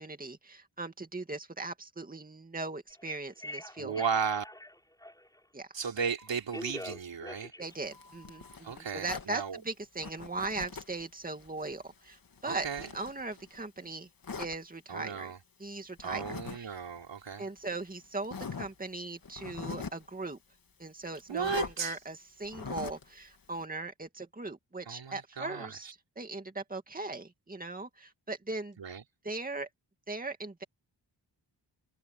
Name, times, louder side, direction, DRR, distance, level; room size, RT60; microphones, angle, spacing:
voice 1, 0.0-3.9 5.5-5.7 7.6-12.7 12.9-14.1 14.4-15.3 15.6-16.7 17.4-20.4 20.8-25.9 26.2-28.8 29.2-29.7 30.1-30.6, right 3 dB, 20° right, 2.3 m, -39 dB
Telephone, 2.9-5.4 6.2-8.6, left 1 dB, 10° left, 8.0 m, -45 dB
voice 2, 3.8-4.4 5.7-7.5 8.6-9.6 12.5-12.9 14.9-15.4 16.0-17.5 21.3-22.0 24.9-25.8 28.8-29.0, right 6 dB, 75° right, 4.2 m, -35 dB
Zipper (clothing), 7.6-9.3 10.0-11.0 11.4-13.6 14.2-14.5 16.0-16.6 16.9-17.0 17.7-17.8 18.2-18.7 19.2-20.1 21.4-21.7 22.4-23.1, left 5 dB, 50° left, 2.6 m, -42 dB
wide cardioid pair, 90°, 44 cm